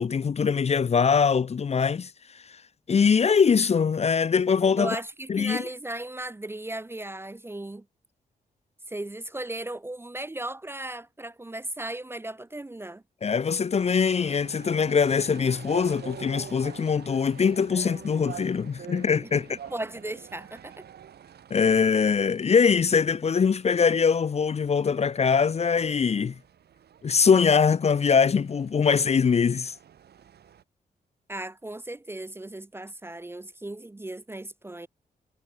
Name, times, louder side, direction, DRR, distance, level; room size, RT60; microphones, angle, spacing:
voice 1, 0.0-2.1 2.9-4.9 5.3-5.6 13.2-19.6 21.5-26.3 27.0-29.7, left 6 dB, 40° left, 0.5 m, -22 dB
voice 2, 4.8-7.9 8.9-13.0 19.3-20.9 21.5-21.9 31.3-34.9, right 1 dB, 15° right, 0.5 m, -36 dB
sound 1, 13.7-30.6, right 9 dB, 75° right, 1.9 m, -47 dB
cardioid pair, 55°, 17 cm